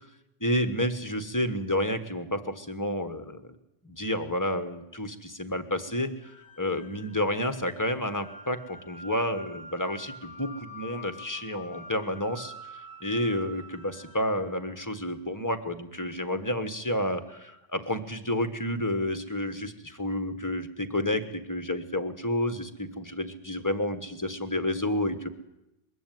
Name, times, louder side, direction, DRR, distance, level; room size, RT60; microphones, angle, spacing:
voice 1, 0.4-3.6 3.8-12.5 13.0-25.3, left 1 dB, 15° left, 9 dB, 1.4 m, -30 dB
sound 1, 6.2-15.4, equal, 15° right, 1.9 m, -47 dB
22.0 x 15.5 x 9.3 m, 0.92 s
omnidirectional pair, 1.3 m